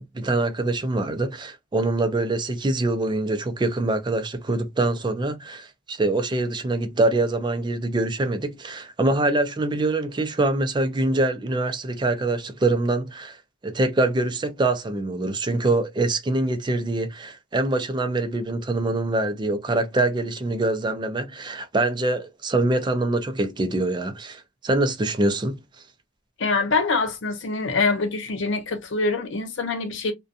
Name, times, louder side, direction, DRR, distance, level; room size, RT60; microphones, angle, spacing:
voice 1, 0.0-13.4 13.6-25.6, right 2 dB, 25° right, 0.4 m, -24 dB
voice 2, 26.4-30.1, left 3 dB, 75° left, 0.7 m, -24 dB
2.5 x 2.2 x 2.6 m
head